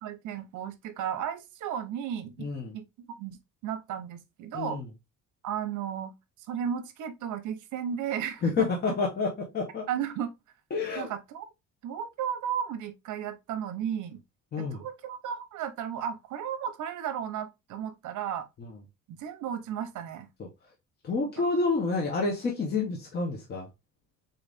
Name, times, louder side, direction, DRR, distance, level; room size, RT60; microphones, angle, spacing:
voice 1, 0.0-2.5 2.7-2.8 3.2-3.4 3.6-4.8 5.4-6.1 6.5-8.7 9.9-10.3 11.0-11.5 11.8-14.2 14.6-18.5 19.1-20.3 21.4-21.5, right 9 dB, 70° right, 0.9 m, -34 dB
voice 2, 2.4-2.7 4.5-4.9 8.4-9.9 10.7-11.1 14.5-14.8 18.6-18.7 20.4-20.5 21.0-23.7, left 4 dB, 30° left, 0.9 m, -29 dB
3.9 x 3.9 x 3.4 m
cardioid pair, 180°, 31 cm